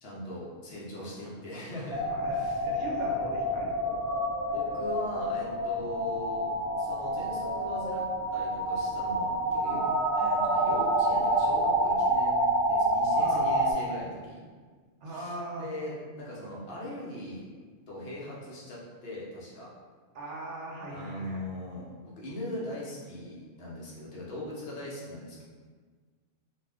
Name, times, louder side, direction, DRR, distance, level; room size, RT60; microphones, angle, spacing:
voice 1, 0.0-2.6 2.9-3.1 4.5-6.5 6.8-9.9 10.1-14.4 15.0-17.5 17.9-19.7 20.9-25.4, left 1 dB, 60° left, -6 dB, 0.9 m, -40 dB
voice 2, 1.7-4.1 5.8-6.0 9.8-9.9 13.1-13.5 15.0-15.6 20.1-21.4, right 1 dB, 75° right, -3 dB, 1.0 m, -40 dB
sound 1, 1.9-13.7, right 1 dB, 5° right, 0.3 m, -28 dB
2.5 x 2.1 x 3.5 m, 1.5 s
omnidirectional pair, 1.2 m